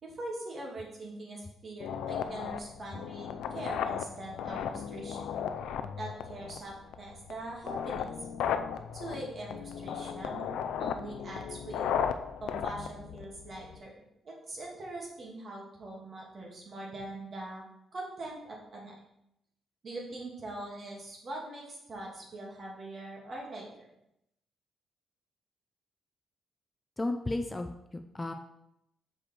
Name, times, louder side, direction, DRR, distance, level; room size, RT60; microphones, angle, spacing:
voice 1, 0.0-5.2 6.0-8.2 8.7-10.4 10.8-11.8 12.4-17.6 17.9-18.9 19.8-23.9, right 2 dB, 45° right, -2 dB, 2.3 m, -42 dB
sound 1, 1.8-13.8, left 8 dB, 85° left, 0.4 m, -36 dB
voice 2, 27.0-28.3, left 2 dB, 20° left, 6 dB, 0.5 m, -34 dB
6.1 x 5.1 x 4.5 m, 0.80 s
cardioid pair, 90°, 0 cm